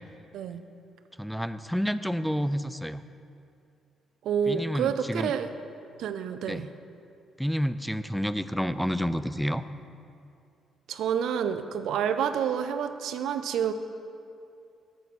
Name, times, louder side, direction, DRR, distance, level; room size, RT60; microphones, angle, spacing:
voice 1, 1.2-3.0 4.5-5.3 6.4-6.7 7.4-9.6, equal, ahead, 12 dB, 0.3 m, -29 dB
voice 2, 4.2-5.5 6.0-6.7 10.9-13.7, right 8 dB, 80° right, 10 dB, 0.4 m, -28 dB
9.3 x 6.9 x 4.1 m, 2.5 s
cardioid pair, 90°, 0 cm